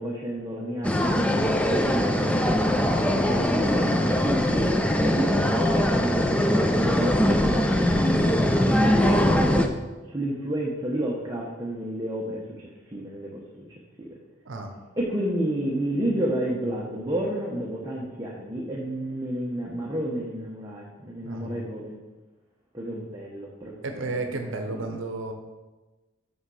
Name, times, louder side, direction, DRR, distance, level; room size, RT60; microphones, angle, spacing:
voice 1, 0.0-2.5 3.1-7.8 8.6-9.7 10.1-14.1 15.0-22.0 22.7-24.1 24.4-25.0, right 1 dB, 15° right, -4 dB, 0.8 m, -31 dB
sound 1, 0.8-9.7, left 1 dB, 5° left, 0.3 m, -22 dB
voice 2, 8.5-9.2 14.4-14.7 21.2-21.7 23.8-25.3, right 2 dB, 70° right, 5 dB, 0.7 m, -33 dB
6.3 x 5.5 x 4.8 m, 1.2 s
head